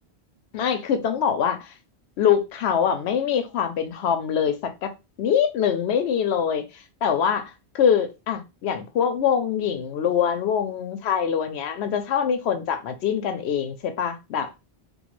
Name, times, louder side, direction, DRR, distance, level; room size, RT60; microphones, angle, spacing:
voice 1, 0.5-1.7 2.2-4.9 5.2-6.6 7.0-14.5, left 8 dB, 85° left, 0.9 m, -24 dB
3.0 x 2.3 x 3.0 m
omnidirectional pair, 1.1 m